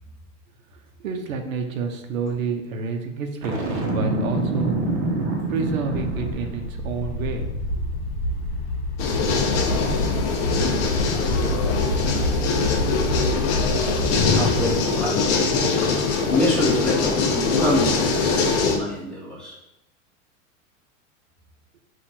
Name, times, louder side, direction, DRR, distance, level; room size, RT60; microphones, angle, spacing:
voice 1, 1.0-3.6 3.9-4.8 5.5-7.5, right 5 dB, 85° right, 5 dB, 0.8 m, -28 dB
Boom, 3.4-6.6, right 2 dB, 35° right, 0.9 m, -26 dB
sound 1, 5.9-14.7, left 1 dB, 55° left, 1.0 m, -27 dB
sound 2, 9.0-18.8, left 4 dB, 40° left, 0.7 m, -22 dB
voice 2, 14.1-15.5 16.3-19.6, left 1 dB, ahead, -6 dB, 0.9 m, -26 dB
4.4 x 2.6 x 4.1 m, 0.89 s
supercardioid pair, 145°, 40 cm